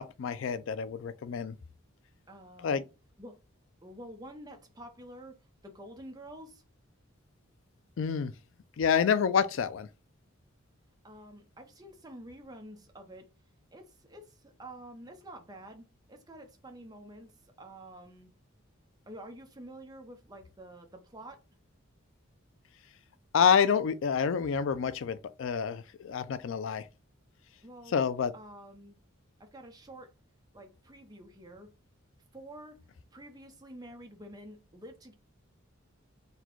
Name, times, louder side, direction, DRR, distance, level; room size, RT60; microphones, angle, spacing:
voice 1, 0.0-1.5 2.6-2.8 8.0-8.3 8.8-9.9 23.3-26.9 27.9-28.3, left 7 dB, 65° left, 0.3 m, -28 dB
voice 2, 2.3-2.8 3.2-3.4 3.8-6.6 11.0-13.3 13.7-18.3 19.1-21.4 27.6-27.9 28.3-29.0 29.4-30.1 30.5-31.7 32.3-32.8 33.1-35.1, right 1 dB, 20° right, 0.7 m, -48 dB
4.0 x 2.2 x 4.4 m
head